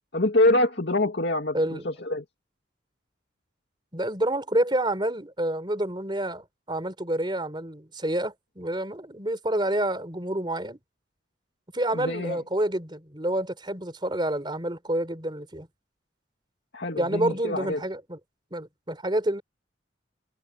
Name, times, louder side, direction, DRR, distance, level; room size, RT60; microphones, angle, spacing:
voice 1, 0.1-2.2 11.9-12.4 16.7-17.8, left 2 dB, 60° left, 2.5 m, -25 dB
voice 2, 1.5-1.9 3.9-10.8 11.7-15.7 16.9-18.2 18.5-19.4, right 1 dB, 25° right, 3.9 m, -28 dB
head